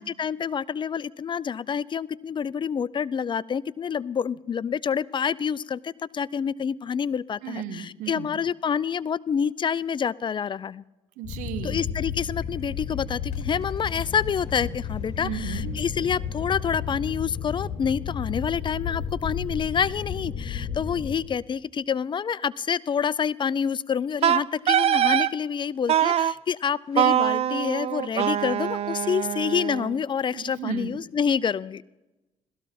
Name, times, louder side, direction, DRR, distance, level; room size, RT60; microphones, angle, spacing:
voice 1, 0.0-10.8 11.6-31.8, left 7 dB, 40° left, 22 dB, 0.4 m, -27 dB
voice 2, 7.4-8.3 11.2-11.8 15.2-15.7 30.3-31.1, right 9 dB, 85° right, 13 dB, 1.1 m, -34 dB
sound 1, 11.2-21.1, left 7 dB, 60° left, 2.1 m, -32 dB
Wind instrument woodwind instrument, 24.2-25.3 25.9-26.3 27.0-30.0, right 11 dB, 50° right, 0.4 m, -23 dB
16.5 x 13.5 x 5.9 m, 1.0 s
supercardioid pair, 75°, 13 cm